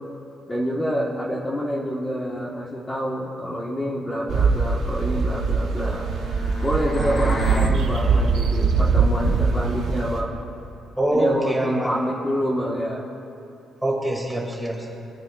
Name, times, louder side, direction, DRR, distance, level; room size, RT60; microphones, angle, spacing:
voice 1, 0.5-6.1 6.6-10.4 11.1-13.0, equal, 15° left, -5 dB, 1.3 m, -27 dB
sound 1, 4.3-10.2, right 4 dB, 75° right, 1.1 m, -22 dB
sound 2, 5.2-7.8, equal, 50° left, 1.3 m, -33 dB
voice 2, 11.0-11.9 13.8-14.9, right 1 dB, 5° right, -1 dB, 2.3 m, -25 dB
22.5 x 9.4 x 2.4 m, 2.7 s
cardioid pair, 90°, 0 cm